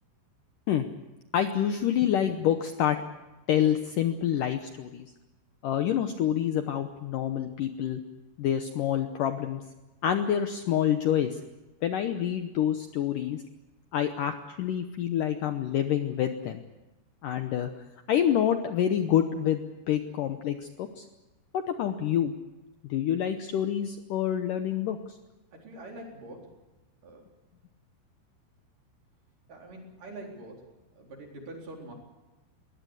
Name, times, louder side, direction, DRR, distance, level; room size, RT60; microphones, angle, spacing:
voice 1, 1.3-3.0 3.5-5.1 5.6-8.0 8.4-9.6 10.0-11.4 11.8-13.4 13.9-16.6 17.2-21.1 21.5-22.3 22.9-25.0, left 10 dB, 90° left, 7 dB, 1.9 m, -27 dB
voice 2, 25.5-26.5 27.0-27.2 29.5-31.9, right 1 dB, 50° right, 0 dB, 5.5 m, -44 dB
22.5 x 18.5 x 8.0 m, 1.1 s
omnidirectional pair, 5.1 m